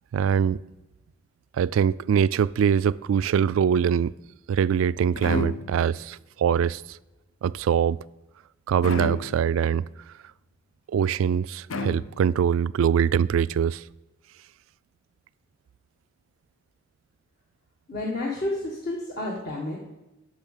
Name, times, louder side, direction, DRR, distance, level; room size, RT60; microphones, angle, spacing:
voice 1, 0.1-0.6 1.6-4.1 4.5-7.0 7.4-8.0 8.7-9.8 10.9-13.8, right 7 dB, 80° right, 0.3 m, -23 dB
sound 1, 5.2-6.0 8.8-9.6 11.7-12.5, left 2 dB, 75° left, 0.7 m, -31 dB
voice 2, 17.9-19.8, left 2 dB, 50° left, 1.6 m, -30 dB
10.5 x 6.5 x 7.3 m
head